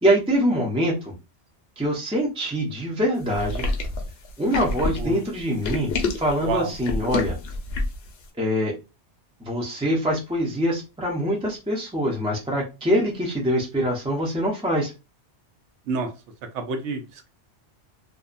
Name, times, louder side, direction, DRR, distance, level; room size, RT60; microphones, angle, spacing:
voice 1, 0.0-1.0 1.8-3.6 4.4-5.9 6.2-7.4 8.4-8.7 9.4-14.9, equal, 10° right, -2 dB, 0.3 m, -24 dB
sound 1, 3.3-8.1, left 3 dB, 65° left, 0.8 m, -27 dB
voice 2, 6.4-6.7 15.9-16.1 16.5-17.3, right 4 dB, 75° right, 6 dB, 0.9 m, -28 dB
2.6 x 2.2 x 2.5 m, 0.28 s
omnidirectional pair, 1.2 m